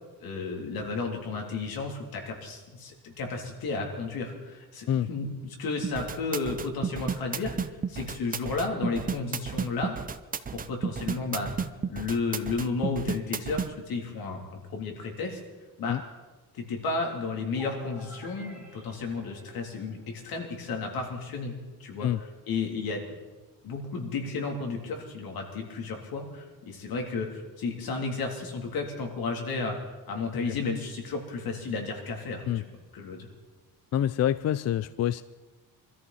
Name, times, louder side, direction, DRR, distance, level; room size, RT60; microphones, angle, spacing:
voice 1, 0.2-10.0 10.5-11.5 11.9-15.4 15.8-16.0 16.5-21.5 21.8-22.1 22.5-23.2 23.6-33.3, left 4 dB, 75° left, 1 dB, 3.4 m, -33 dB
sound 1, 5.8-13.7, right 6 dB, 25° right, 0.6 m, -32 dB
sound 2, 17.5-20.3, right 2 dB, 5° right, 4.6 m, -49 dB
voice 2, 33.9-35.2, left 11 dB, 45° left, 15 dB, 0.4 m, -26 dB
24.5 x 13.5 x 4.2 m, 1.2 s
cardioid pair, 125°, 36 cm